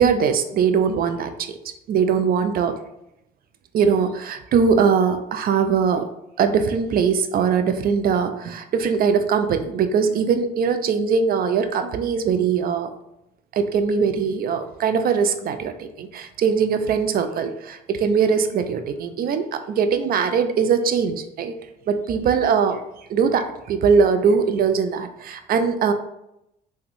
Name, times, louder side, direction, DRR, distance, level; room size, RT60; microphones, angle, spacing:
voice 1, 0.0-1.5 1.9-2.8 3.7-6.1 6.4-12.9 13.5-21.5 21.9-22.8 23.1-25.9, right 6 dB, 45° right, 9 dB, 0.4 m, -21 dB
3.4 x 2.2 x 3.1 m, 0.84 s
hypercardioid pair, 60°, 21 cm